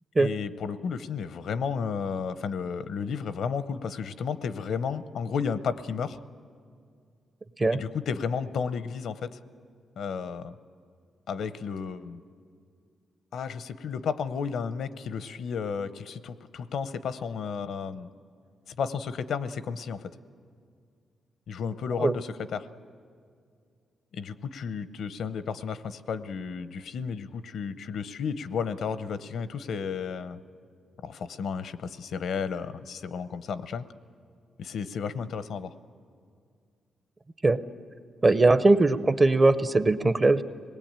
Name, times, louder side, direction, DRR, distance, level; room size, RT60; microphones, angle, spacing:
voice 1, 0.2-6.2 7.7-9.4 10.0-10.5 11.3-12.2 13.3-18.1 18.7-20.0 21.5-22.7 24.1-30.4 31.0-33.8 34.6-35.7, left 6 dB, 65° left, 13 dB, 0.7 m, -33 dB
voice 2, 38.2-40.4, right 2 dB, 20° right, 12 dB, 0.5 m, -20 dB
26.0 x 20.0 x 8.8 m, 2.2 s
wide cardioid pair, 170°, 0 cm